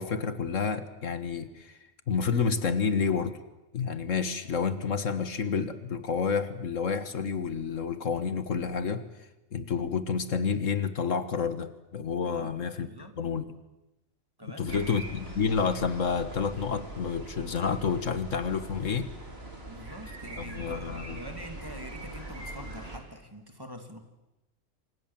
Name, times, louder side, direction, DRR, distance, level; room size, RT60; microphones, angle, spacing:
voice 1, 0.0-1.8 2.1-3.4 3.7-9.0 9.5-12.9 13.2-13.4 14.6-19.1 20.4-21.2, left 5 dB, 80° left, 11 dB, 1.8 m, -29 dB
voice 2, 12.2-12.5 12.8-13.2 14.4-15.0 19.7-24.0, equal, 15° right, 5 dB, 2.8 m, -45 dB
sound 1, 14.7-23.0, right 2 dB, 50° right, 4.8 m, -42 dB
29.0 x 25.0 x 7.5 m, 0.98 s
omnidirectional pair, 1.3 m